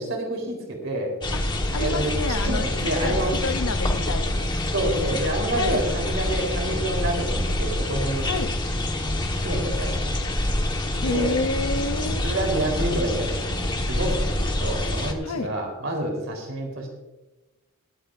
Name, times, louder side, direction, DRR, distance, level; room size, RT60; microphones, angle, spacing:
voice 1, 0.0-1.1 1.8-2.1 2.4-3.4 4.7-8.3 9.4-9.9 11.0-11.3 12.2-16.9, right 1 dB, 60° right, 2 dB, 3.9 m, -28 dB
sound 1, 1.2-15.1, left 1 dB, 20° left, 1.3 m, -26 dB
voice 2, 1.3-2.7 3.0-4.5 4.9-5.2 5.5-5.9 8.2-8.6 11.0-12.3 15.2-15.5, left 3 dB, 85° left, 7 dB, 0.7 m, -30 dB
23.5 x 8.9 x 2.6 m, 1.1 s
head